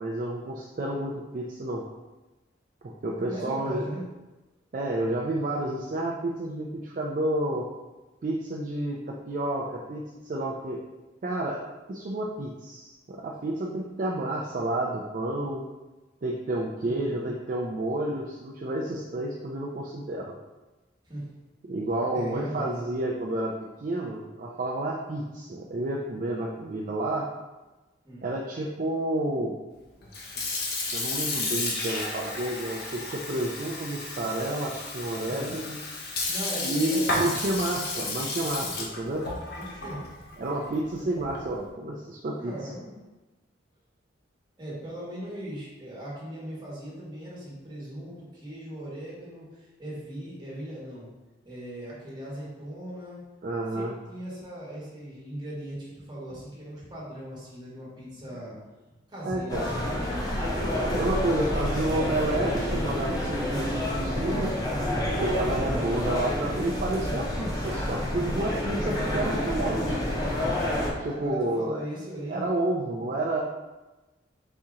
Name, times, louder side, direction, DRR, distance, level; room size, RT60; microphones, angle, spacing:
voice 1, 0.0-1.8 2.8-3.8 4.7-7.7 8.2-10.8 11.2-11.6 11.9-15.6 16.2-20.3 21.7-23.5 23.8-27.3 28.2-29.5 30.9-35.8 36.6-39.3 40.4-42.5 53.4-53.9 59.3-59.7 60.8-64.5 65.2-70.1 71.0-71.8 72.3-73.4, right 1 dB, 45° right, -2 dB, 0.4 m, -30 dB
voice 2, 3.3-4.0 16.8-17.3 21.0-21.2 22.1-22.7 28.0-28.3 35.3-35.5 36.3-37.4 39.6-40.0 42.4-42.9 44.6-51.1 51.4-53.2 53.7-58.6 59.1-60.0 65.7-66.0 67.0-67.1 70.8-72.4, right 1 dB, 25° right, -7 dB, 1.4 m, -39 dB
Sink (filling or washing) / Fill (with liquid), 30.0-41.6, left 2 dB, 55° left, 0.8 m, -33 dB
sound 1, 59.5-70.9, left 1 dB, 20° left, 0.7 m, -28 dB
4.3 x 2.8 x 3.6 m, 1.1 s
head